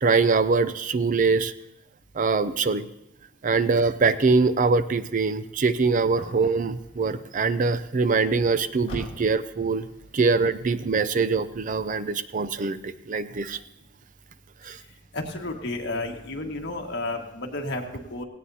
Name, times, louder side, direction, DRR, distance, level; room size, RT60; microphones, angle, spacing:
voice 1, 0.0-1.5 2.1-2.8 3.4-9.9 10.1-13.6 14.6-14.8, right 4 dB, 40° right, 13 dB, 0.5 m, -23 dB
sound 1, 3.5-12.0, equal, 30° left, 6.6 m, -47 dB
voice 2, 15.1-18.2, left 2 dB, 60° left, 1 dB, 1.7 m, -32 dB
17.5 x 17.5 x 2.8 m, 0.82 s
head